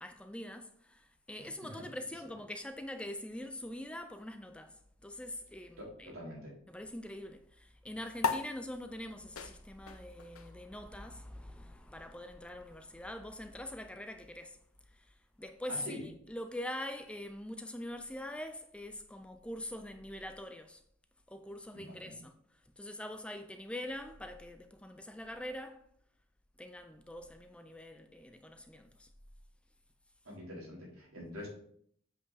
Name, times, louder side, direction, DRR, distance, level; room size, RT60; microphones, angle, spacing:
voice 1, 0.0-4.8 5.0-6.1 6.7-14.6 15.4-20.8 21.3-22.3 22.8-25.8 26.6-29.1, left 1 dB, 5° left, 0.4 m, -44 dB
voice 2, 1.4-1.8 5.8-6.5 15.7-16.0 21.7-22.1 30.2-31.5, equal, 85° right, 3.4 m, -46 dB
sound 1, 8.2-15.0, left 5 dB, 90° left, 0.6 m, -42 dB
7.8 x 5.4 x 4.0 m
head